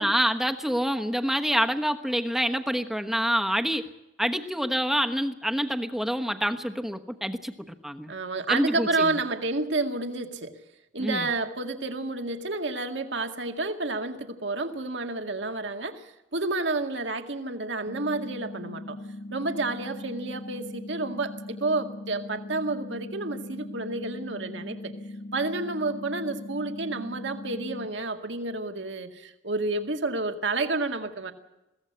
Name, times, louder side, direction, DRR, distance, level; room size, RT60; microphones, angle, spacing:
voice 1, 0.0-3.9 4.2-7.5 7.8-8.1 8.5-9.2 11.0-11.3, equal, ahead, 6 dB, 1.2 m, -27 dB
voice 2, 8.1-10.5 10.9-19.0 19.3-24.9 25.3-31.3, right 3 dB, 75° right, 6 dB, 2.0 m, -30 dB
sound 1, 17.9-27.9, left 1 dB, 75° left, 1.5 m, -40 dB
22.0 x 16.5 x 8.1 m, 0.95 s
head